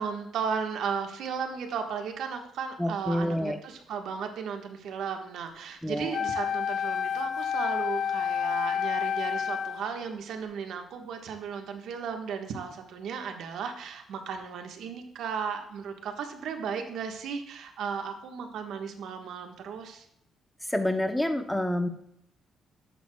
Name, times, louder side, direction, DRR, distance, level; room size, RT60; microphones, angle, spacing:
voice 1, 0.0-20.0, right 6 dB, 75° right, 4 dB, 1.3 m, -35 dB
voice 2, 2.8-3.6 5.8-6.2 20.7-21.9, left 1 dB, 5° left, 7 dB, 1.0 m, -28 dB
Wind instrument woodwind instrument, 6.1-9.9, left 7 dB, 65° left, 0.7 m, -29 dB
11.0 x 8.0 x 2.3 m, 0.75 s
cardioid pair, 90°, 0 cm